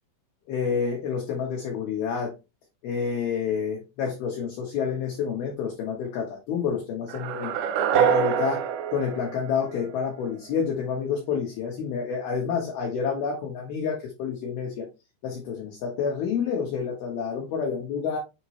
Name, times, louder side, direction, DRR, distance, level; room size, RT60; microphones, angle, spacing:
voice 1, 0.5-2.3 2.8-7.5 7.9-8.6 8.9-14.9 15.2-18.2, left 6 dB, 70° left, 0 dB, 2.4 m, -29 dB
sound 1, 7.1-10.2, right 8 dB, 85° right, 3.2 m, -26 dB
7.1 x 4.5 x 2.9 m, 0.25 s
omnidirectional pair, 5.8 m